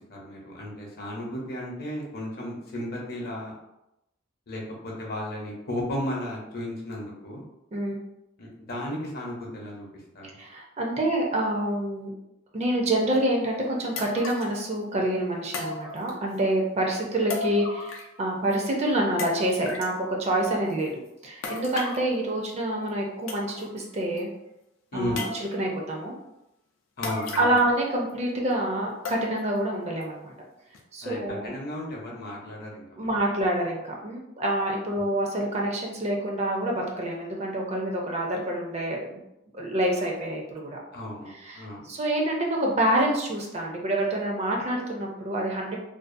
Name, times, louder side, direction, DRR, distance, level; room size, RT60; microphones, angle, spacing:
voice 1, 0.1-3.5 4.5-7.4 8.4-9.9 10.1-10.4 24.9-25.3 27.0-27.7 31.0-33.1 35.0-35.1 40.9-41.9, left 1 dB, 50° left, -2 dB, 0.7 m, -34 dB
voice 2, 10.4-12.1 12.5-24.3 24.9-25.3 25.5-26.1 27.4-30.3 30.9-31.5 33.0-39.2 39.5-40.8 41.3-45.8, right 1 dB, 35° right, 0 dB, 0.4 m, -27 dB
sound 1, 13.1-13.2 14.0-14.6 15.5-16.4 17.3-18.2 18.5-18.6 19.2-20.0 21.4-22.1 22.9-23.0 23.3-23.8 24.2-24.3 25.2-25.7 27.0-27.8 28.1-28.2 29.1-29.6 30.0-30.1 30.7-30.8, left 3 dB, 90° left, 0.5 m, -35 dB
2.5 x 2.3 x 2.5 m, 0.89 s
head